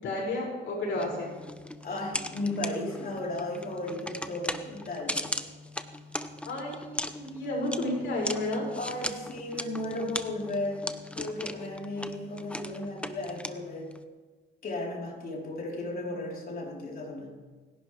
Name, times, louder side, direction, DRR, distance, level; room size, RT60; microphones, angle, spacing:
voice 1, 0.0-1.3 6.4-8.7 15.7-16.1, left 1 dB, 75° left, -3 dB, 6.1 m, -32 dB
sound 1, 0.9-14.0, left 1 dB, 5° left, 0.8 m, -39 dB
voice 2, 1.8-5.3 8.7-10.9 11.2-13.9 14.6-17.3, left 2 dB, 45° left, -1 dB, 4.0 m, -35 dB
28.5 x 11.0 x 3.4 m, 1.4 s
cardioid pair, 90°, 20 cm